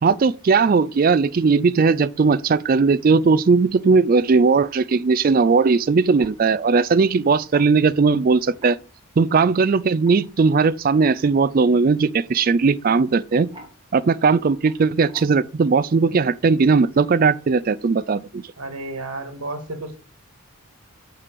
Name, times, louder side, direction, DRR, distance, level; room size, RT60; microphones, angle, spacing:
voice 1, 0.0-8.8 9.2-13.5 13.9-18.5, right 4 dB, 40° right, 0.3 m, -18 dB
sound 1, 6.2-6.3 7.5-7.7 8.5-9.0 9.9-10.6 12.3-12.5 13.3-13.8 14.7-14.8 15.1-15.5, equal, 20° right, 1.6 m, -43 dB
voice 2, 18.6-20.0, right 2 dB, 75° right, 1.8 m, -32 dB
5.6 x 5.3 x 6.7 m
head